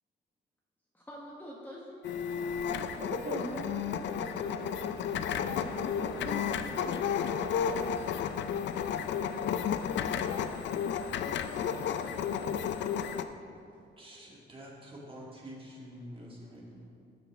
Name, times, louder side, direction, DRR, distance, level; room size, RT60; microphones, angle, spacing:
voice 1, 0.9-2.9, equal, 10° left, -4 dB, 1.3 m, -47 dB
sound 1, 2.0-13.2, left 7 dB, 65° left, 0.5 m, -32 dB
voice 2, 3.0-7.1, right 3 dB, 65° right, 1 dB, 1.4 m, -42 dB
voice 3, 14.0-17.0, equal, 25° right, -4 dB, 2.3 m, -47 dB
13.0 x 6.9 x 3.6 m, 2.4 s
cardioid pair, 90°, 20 cm